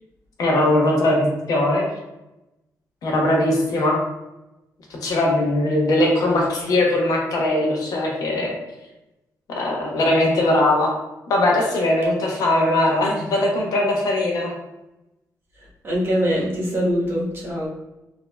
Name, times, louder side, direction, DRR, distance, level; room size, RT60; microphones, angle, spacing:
voice 1, 0.4-1.9 3.0-4.0 4.9-8.6 9.5-10.9 11.3-14.5, left 1 dB, 70° left, -1 dB, 0.9 m, -20 dB
voice 2, 15.8-17.7, equal, 35° right, -5 dB, 1.2 m, -23 dB
4.2 x 2.8 x 2.2 m, 0.96 s
cardioid pair, 115°, 6 cm